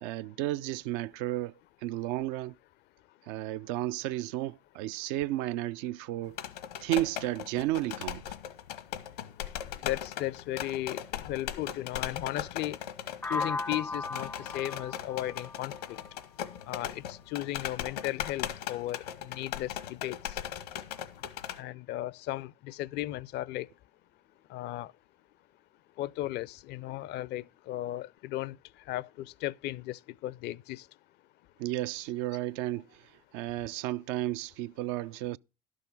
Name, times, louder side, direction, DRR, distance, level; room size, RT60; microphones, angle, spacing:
voice 1, 0.0-1.5 1.8-2.6 3.3-6.4 6.8-8.2 31.6-35.4, right 15 dB, 65° right, 0.4 m, -33 dB
sound 1, 6.3-21.6, left 10 dB, 80° left, 1.1 m, -39 dB
voice 2, 9.8-12.8 13.3-16.0 16.7-20.4 21.6-23.7 24.5-24.9 26.0-28.6 28.9-30.9, left 15 dB, 55° left, 0.5 m, -36 dB
sound 2, 13.2-17.1, left 3 dB, 10° left, 0.4 m, -38 dB
11.5 x 6.4 x 5.4 m
hypercardioid pair, 70°, 20 cm